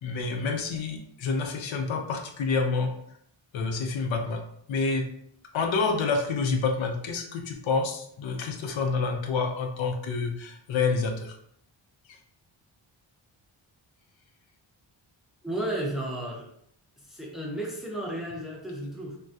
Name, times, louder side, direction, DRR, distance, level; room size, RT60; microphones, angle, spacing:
voice 1, 0.0-2.9 3.5-5.1 5.5-11.3, left 4 dB, 70° left, 4 dB, 0.5 m, -28 dB
voice 2, 15.4-16.5 17.1-19.2, right 1 dB, ahead, -2 dB, 0.5 m, -33 dB
3.3 x 2.2 x 2.6 m, 0.69 s
wide cardioid pair, 135°, 48 cm